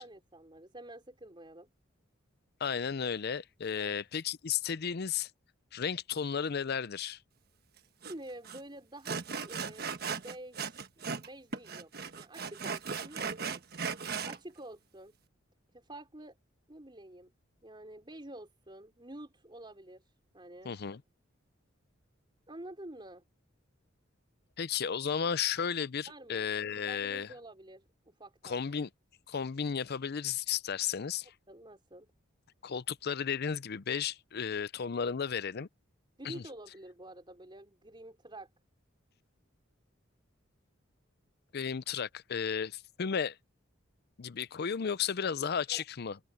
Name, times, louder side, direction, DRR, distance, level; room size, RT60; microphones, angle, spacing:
voice 1, 0.0-1.7 3.8-4.0 8.1-11.9 12.2-13.6 14.2-15.1 15.7-16.4 16.7-17.3 17.6-20.7 22.5-23.2 26.1-26.5 26.9-28.6 31.5-32.1 36.2-38.5 45.7-45.8, right 1 dB, 25° right, 4.6 m, -49 dB
voice 2, 2.6-5.3 5.7-7.2 20.6-21.0 24.6-27.3 28.4-28.9 29.3-31.3 32.6-35.7 36.2-36.4 41.5-43.4 44.2-46.2, left 7 dB, 55° left, 0.5 m, -34 dB
Sawing, 8.0-8.1 8.4-8.6 9.0-11.3 11.5-14.4, right 5 dB, 55° right, 1.3 m, -37 dB
open air
head